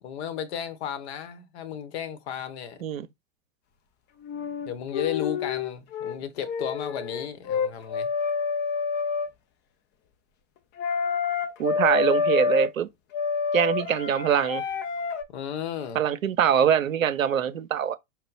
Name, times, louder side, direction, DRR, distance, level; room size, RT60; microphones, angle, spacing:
voice 1, 0.0-2.8 4.7-8.1 15.3-16.0, left 9 dB, 55° left, 1.0 m, -34 dB
sound 1, 4.2-6.2 6.4-9.3 10.8-12.7 13.1-15.2, left 5 dB, 25° left, 0.5 m, -28 dB
voice 2, 11.6-12.9 13.5-14.6 15.9-18.0, right 9 dB, 80° right, 0.6 m, -23 dB
4.7 x 2.2 x 3.9 m
figure-of-eight pair, 95°, 40 cm